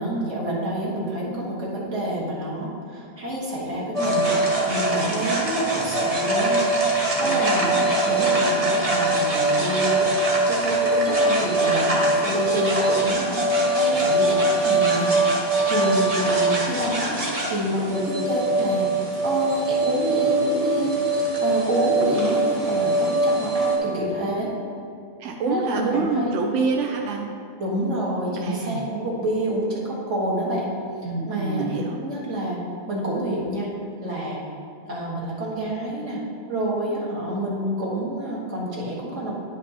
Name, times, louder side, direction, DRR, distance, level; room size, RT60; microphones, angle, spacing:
voice 1, 0.0-4.3 4.6-10.0 10.5-13.4 13.7-17.1 17.4-18.9 19.2-24.5 25.4-26.4 27.6-30.7 31.0-31.7 32.0-32.6 32.9-33.7 34.0-34.4 34.9-36.2 36.5-39.3, right 1 dB, 50° right, -5 dB, 1.7 m, -28 dB
sound 1, 3.9-23.8, right 2 dB, 30° right, 0.8 m, -22 dB
voice 2, 7.2-7.9 25.2-27.3 28.4-28.8 31.0-32.0, right 4 dB, 70° right, 1 dB, 0.7 m, -27 dB
10.0 x 5.2 x 2.8 m, 2.4 s
omnidirectional pair, 1.7 m